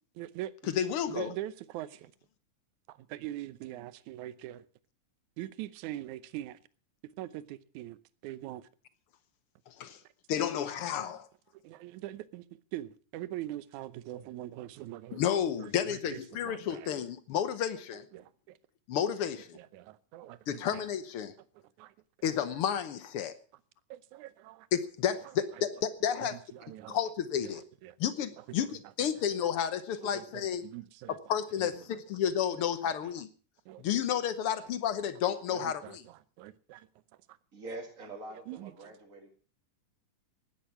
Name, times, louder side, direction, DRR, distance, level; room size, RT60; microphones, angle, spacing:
voice 1, 0.2-0.7 1.1-2.1 2.9-4.7 5.4-6.6 7.2-8.0 8.2-8.7 11.0-11.2 11.6-12.5 12.7-15.2 15.6-16.9 18.1-18.6 19.5-20.8 21.8-21.9 23.9-24.7 25.3-25.4 26.2-27.0 27.4-28.0 28.4-28.8 30.0-31.2 31.6-31.9 32.5-33.1 33.7-33.8 34.4-34.5 35.5-36.0 36.4-36.8 38.5-38.7, right 14 dB, 75° right, 2.1 m, -43 dB
voice 2, 0.7-1.3 9.7-10.0 10.3-11.3 15.1-18.0 18.9-19.6 20.5-21.3 22.2-23.3 24.7-26.3 26.9-27.6 28.0-30.6 31.3-33.3 33.8-35.8, left 9 dB, 75° left, 1.3 m, -31 dB
voice 3, 37.5-39.3, right 2 dB, 30° right, 2.0 m, -44 dB
16.5 x 11.5 x 5.7 m
omnidirectional pair, 3.7 m